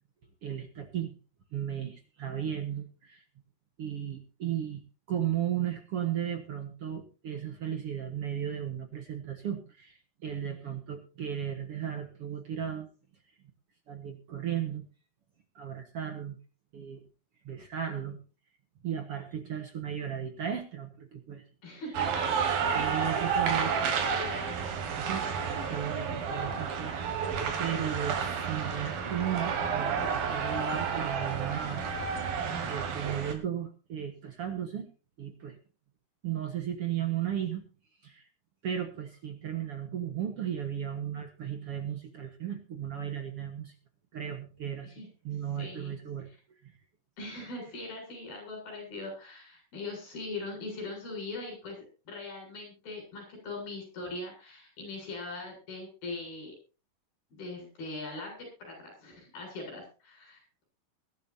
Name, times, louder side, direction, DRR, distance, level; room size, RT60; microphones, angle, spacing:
voice 1, 0.4-1.2 1.5-3.2 3.8-4.8 5.1-12.9 13.9-14.9 15.6-16.4 16.7-17.0 17.4-18.2 18.8-21.4 22.7-23.7 25.0-25.3 25.7-27.3 27.6-32.2 32.7-34.9 35.2-35.6 36.2-37.6 38.0-38.3 38.6-43.7 44.1-44.9 45.2-46.3 46.6-46.7, right 9 dB, 55° right, 6 dB, 1.8 m, -35 dB
voice 2, 21.6-24.6 44.8-45.1 45.6-46.0 47.2-56.5 57.3-60.6, left 2 dB, 85° left, 2 dB, 9.3 m, -41 dB
sound 1, 21.9-33.3, right 6 dB, 80° right, 3.8 m, -31 dB
21.5 x 11.5 x 2.7 m, 0.33 s
omnidirectional pair, 4.1 m